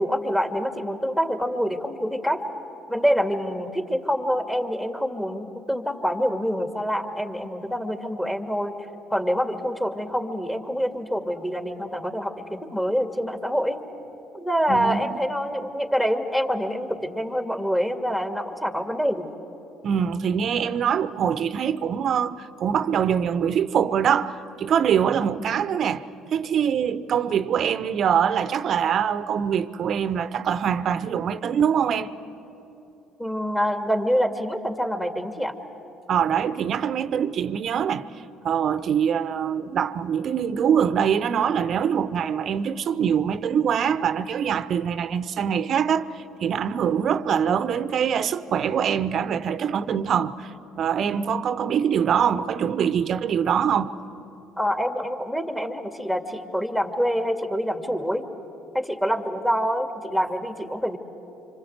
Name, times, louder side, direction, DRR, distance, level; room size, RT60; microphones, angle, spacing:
voice 1, 0.0-2.4 2.9-8.7 9.1-13.8 14.3-19.3 33.2-35.5 51.1-51.4 54.6-58.2 58.7-61.0, equal, 10° left, 2.4 m, -26 dB
voice 2, 14.7-15.1 19.8-26.0 26.3-32.1 36.1-38.1 38.4-50.5 50.8-53.9, right 8 dB, 55° right, 0.9 m, -24 dB
26.0 x 25.5 x 8.1 m
supercardioid pair, 70°, 0 cm